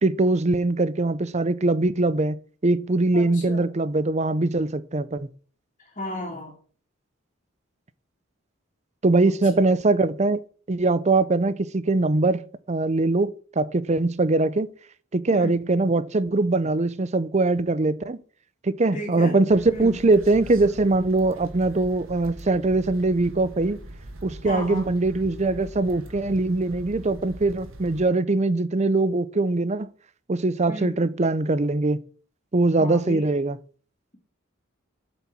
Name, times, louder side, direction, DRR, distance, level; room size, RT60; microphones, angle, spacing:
voice 1, 0.0-5.3 9.0-10.4 10.7-14.7 15.1-18.2 18.6-23.8 24.2-29.9 30.3-32.0 32.5-33.6, right 2 dB, 35° right, 0.6 m, -22 dB
voice 2, 3.1-3.7 6.0-6.5 9.2-9.7 15.3-15.6 18.9-19.4 19.7-19.9 24.4-24.9 30.7-31.0 32.8-33.3, left 1 dB, 30° left, 2.6 m, -34 dB
sound 1, 19.5-28.0, right 1 dB, 70° right, 1.6 m, -42 dB
7.8 x 7.1 x 6.1 m
head